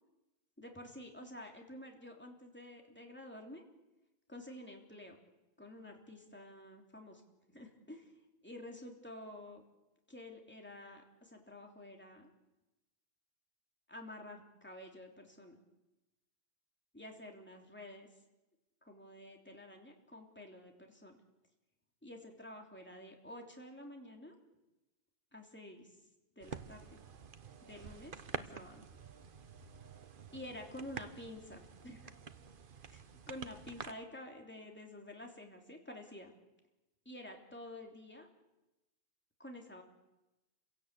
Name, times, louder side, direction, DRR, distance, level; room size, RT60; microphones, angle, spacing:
voice 1, 0.6-3.6 4.3-5.2 5.6-7.2 7.5-8.1 8.4-9.6 10.1-12.3 13.9-15.6 16.9-18.1 18.8-21.2 22.0-24.3 25.3-25.9 26.4-27.0 27.6-28.8 30.3-32.1 32.9-33.0 33.3-36.3 37.0-38.3 39.4-39.8, left 1 dB, 10° left, 2 dB, 3.2 m, -50 dB
sound 1, 26.4-33.9, right 6 dB, 50° right, 1.1 m, -48 dB
28.5 x 17.0 x 8.4 m, 1.0 s
omnidirectional pair, 1.1 m